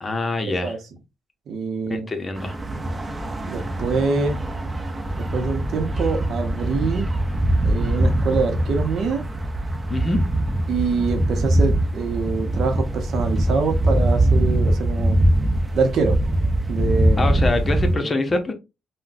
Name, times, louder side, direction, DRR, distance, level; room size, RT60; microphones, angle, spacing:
voice 1, 0.0-0.8 1.9-2.6 9.9-10.2 17.2-18.5, left 2 dB, 25° left, 0.7 m, -24 dB
voice 2, 1.5-2.1 3.4-4.4 5.3-7.1 7.6-9.2 10.7-15.2 15.7-16.2 16.7-17.3 17.9-18.1, right 4 dB, 65° right, 0.7 m, -25 dB
sound 1, 2.3-18.0, right 1 dB, 30° right, 0.7 m, -22 dB
3.7 x 2.2 x 2.5 m
cardioid pair, 90°, 0 cm